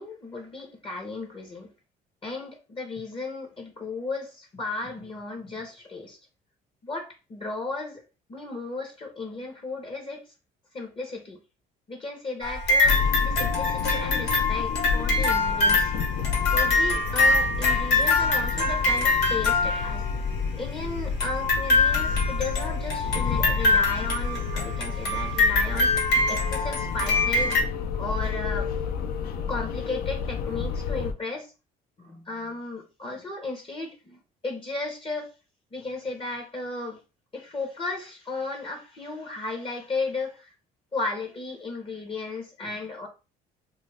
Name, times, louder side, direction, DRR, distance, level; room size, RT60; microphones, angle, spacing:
voice 1, 0.0-1.7 2.2-6.2 6.8-8.0 8.3-10.2 10.7-11.4 11.9-15.9 16.5-20.0 20.5-25.9 26.3-27.6 28.0-28.7 29.5-31.5 32.0-35.3 35.7-37.0 37.3-40.5 40.9-43.1, left 3 dB, 30° left, 0.8 m, -35 dB
sound 1, 12.4-20.3 21.2-27.6, left 3 dB, 80° left, 1.3 m, -24 dB
sound 2, 12.8-31.1, left 6 dB, 65° left, 0.4 m, -30 dB
2.5 x 2.4 x 3.2 m
cardioid pair, 110°, 17 cm